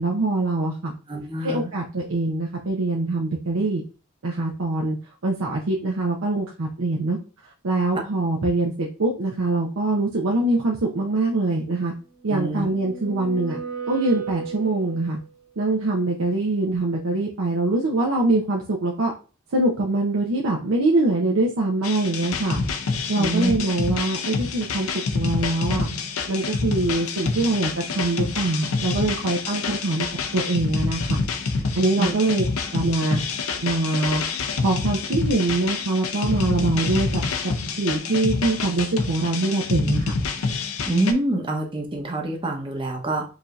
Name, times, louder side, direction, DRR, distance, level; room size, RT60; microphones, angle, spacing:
voice 1, 0.0-0.9 1.4-3.8 4.2-5.0 5.2-7.2 7.6-11.9 12.2-13.6 13.9-15.2 15.6-19.1 19.5-22.6 23.1-24.9 25.1-25.9 26.3-30.1 30.3-31.2 31.5-32.4 32.7-33.2 33.6-34.2 34.6-37.5 37.8-40.1, right 2 dB, 80° right, -2 dB, 0.7 m, -23 dB
voice 2, 1.1-1.7 12.3-12.7 23.2-23.5 32.0-32.1 40.9-43.2, right 2 dB, 25° right, 1 dB, 0.8 m, -25 dB
sound 1, 12.3-15.3, right 6 dB, 20° left, 0.7 m, -35 dB
sound 2, 21.8-41.1, left 4 dB, 85° left, 0.5 m, -27 dB
4.8 x 2.7 x 2.4 m, 0.36 s
head